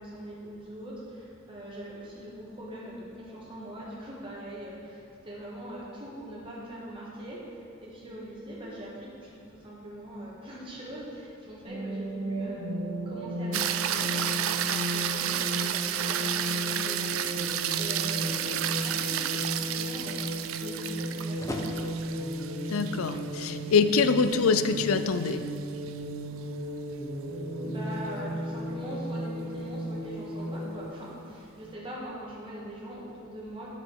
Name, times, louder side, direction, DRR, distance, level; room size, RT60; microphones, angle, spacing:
voice 1, 0.0-12.6 13.0-20.2 20.6-21.8 27.6-33.7, right 1 dB, 25° right, -6 dB, 1.6 m, -42 dB
sound 1, 11.7-30.8, equal, 60° right, 2.2 m, -35 dB
sound 2, 13.5-25.9 30.4-30.5, right 11 dB, 75° right, 0.4 m, -32 dB
Slam, 18.2-23.8, left 1 dB, 15° left, 0.6 m, -44 dB
voice 2, 22.7-25.4, left 5 dB, 85° left, 10 dB, 0.4 m, -24 dB
8.5 x 6.6 x 4.6 m, 2.5 s
head